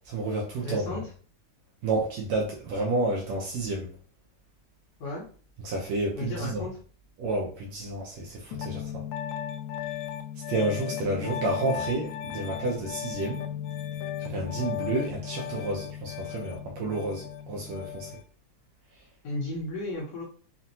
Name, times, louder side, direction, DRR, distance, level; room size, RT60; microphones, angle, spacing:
voice 1, 0.1-1.0 1.8-3.9 5.6-6.6 7.2-9.0 10.5-13.4 14.2-18.1, right 2 dB, 70° right, -2 dB, 1.8 m, -30 dB
voice 2, 0.6-1.1 5.0-5.2 6.2-6.8 19.2-20.2, left 2 dB, 65° left, -4 dB, 1.9 m, -34 dB
Piano, 8.5-18.2, left 10 dB, 80° left, 1.8 m, -36 dB
6.0 x 2.4 x 2.7 m, 0.42 s
omnidirectional pair, 3.7 m